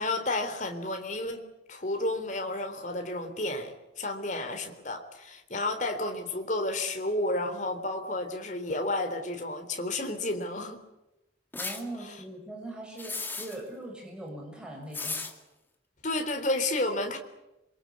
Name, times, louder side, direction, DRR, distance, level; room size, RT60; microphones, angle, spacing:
voice 1, 0.0-10.8 16.0-17.2, left 2 dB, 40° left, 5 dB, 3.6 m, -31 dB
sound 1, 11.5-11.8 13.0-13.6 14.9-15.3, left 3 dB, 10° left, 2.2 m, -35 dB
voice 2, 11.5-15.3, right 1 dB, 5° right, -1 dB, 6.8 m, -41 dB
27.0 x 24.0 x 8.4 m, 0.94 s
head